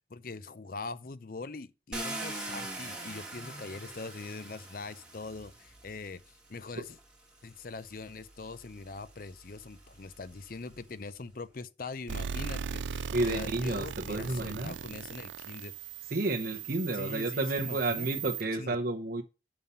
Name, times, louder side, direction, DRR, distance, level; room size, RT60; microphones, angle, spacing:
voice 1, 0.1-7.0 7.4-15.7 16.9-18.2 18.6-18.8, left 3 dB, 50° left, 0.6 m, -42 dB
Car, 1.9-6.0 7.0-7.1 7.6-10.9, right 2 dB, 5° right, 1.6 m, -43 dB
sound 1, 12.1-18.4, right 7 dB, 90° right, 0.4 m, -38 dB
voice 2, 13.1-14.7 16.1-19.2, right 2 dB, 55° right, 0.9 m, -31 dB
6.9 x 5.6 x 5.6 m
head